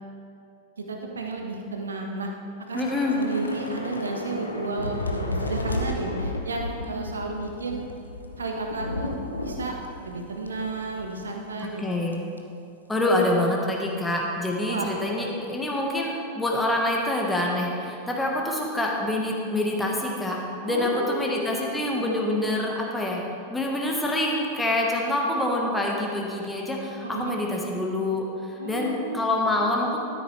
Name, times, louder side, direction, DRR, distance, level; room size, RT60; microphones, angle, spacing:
voice 1, 0.8-2.3 2.7-2.8 3.2-7.8 8.4-9.8 10.0-12.2 14.7-14.9 15.1-15.3 20.7-21.9 27.0-27.3 28.6-29.5, right 3 dB, 70° right, 2 dB, 1.2 m, -32 dB
Thunder / Rain, 2.7-11.3 11.6-11.8 12.1-12.4, left 1 dB, 80° left, 0.8 m, -33 dB
voice 2, 2.7-3.2 11.6-12.2 12.9-20.4 20.6-23.2 23.5-30.0, left 1 dB, 5° left, -1 dB, 1.4 m, -26 dB
12.5 x 10.0 x 3.3 m, 2.5 s
figure-of-eight pair, 90°, 0 cm